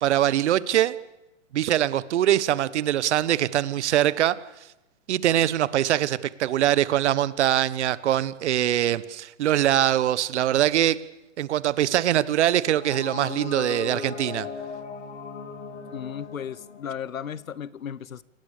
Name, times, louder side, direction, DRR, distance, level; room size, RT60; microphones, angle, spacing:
voice 1, 0.0-0.9 1.5-4.4 5.1-11.0 11.4-14.5, right 12 dB, 60° right, 1.4 m, -23 dB
sound 1, 12.6-17.6, left 7 dB, 60° left, 3.7 m, -38 dB
voice 2, 15.9-18.2, left 8 dB, 90° left, 1.1 m, -35 dB
29.0 x 18.5 x 6.8 m
hypercardioid pair, 135°, 40 cm